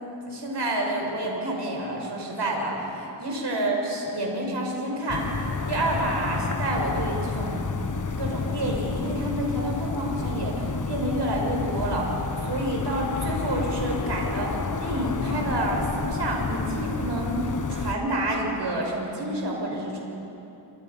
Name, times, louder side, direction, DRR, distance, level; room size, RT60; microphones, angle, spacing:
voice 1, 0.0-5.3 5.7-7.6 8.2-12.1 12.4-20.0, right 1 dB, 60° right, -1 dB, 6.0 m, -28 dB
sound 1, 5.1-17.9, left 4 dB, 40° left, 1.3 m, -30 dB
29.0 x 26.0 x 5.7 m, 2.9 s
wide cardioid pair, 80°, 47 cm